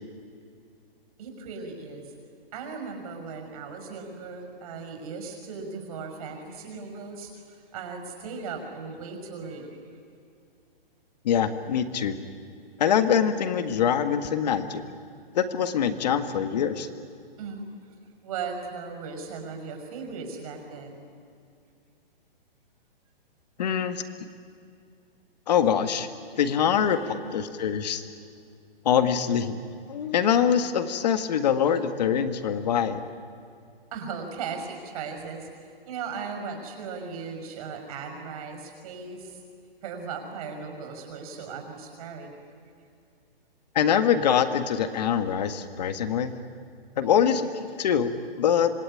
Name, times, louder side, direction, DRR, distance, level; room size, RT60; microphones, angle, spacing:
voice 1, 1.2-2.1 2.5-9.7 17.4-17.7 18.2-21.1 26.8-27.1 33.9-39.4 39.8-42.3 47.0-47.3, right 5 dB, 40° right, 4 dB, 5.9 m, -37 dB
voice 2, 11.2-12.2 12.8-14.8 15.3-16.9 23.6-24.0 25.5-26.1 26.4-27.0 27.3-28.0 28.9-29.6 29.9-33.0 43.8-46.3 47.0-48.7, left 8 dB, 45° left, 10 dB, 1.8 m, -24 dB
26.0 x 20.0 x 9.9 m, 2.4 s
hypercardioid pair, 165°, 29 cm